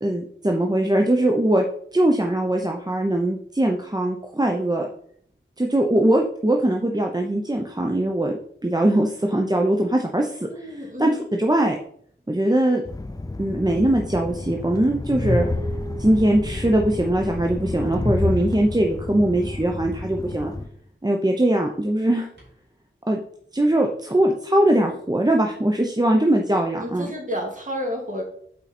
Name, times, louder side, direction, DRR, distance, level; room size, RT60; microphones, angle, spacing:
voice 1, 0.0-1.6 1.9-4.9 5.6-8.4 8.6-10.5 11.0-11.8 12.3-12.8 13.4-15.5 16.0-20.5 21.0-22.3 23.1-23.2 23.5-27.1, right 1 dB, 20° right, 1 dB, 0.8 m, -21 dB
voice 2, 10.5-11.2 26.8-28.2, equal, 35° right, 0 dB, 2.3 m, -30 dB
Train, 12.9-20.7, left 2 dB, 15° left, 0.6 m, -29 dB
Dog, 15.1-19.1 20.1-20.3 22.4-22.5, right 2 dB, 60° right, 3.7 m, -41 dB
8.4 x 4.7 x 4.3 m, 0.62 s
wide cardioid pair, 65°, 21 cm